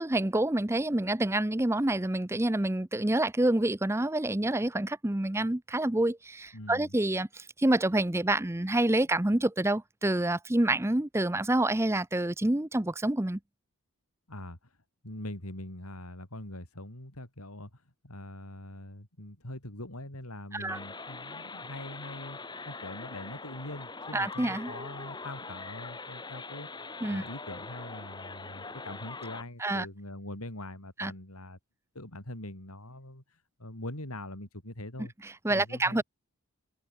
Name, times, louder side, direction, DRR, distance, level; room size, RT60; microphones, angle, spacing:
voice 1, 0.0-13.4 20.5-20.8 24.1-24.7 27.0-27.2 29.6-29.9 31.0-31.1 35.0-36.0, right 1 dB, 10° right, 0.6 m, -27 dB
voice 2, 6.5-6.9 14.3-14.6 15.0-17.7 18.0-22.4 22.6-26.7 27.0-31.6 31.9-33.2 33.6-35.1 35.5-36.0, left 1 dB, 90° left, 6.2 m, -43 dB
sound 1, 20.7-29.4, left 3 dB, 20° left, 1.9 m, -42 dB
head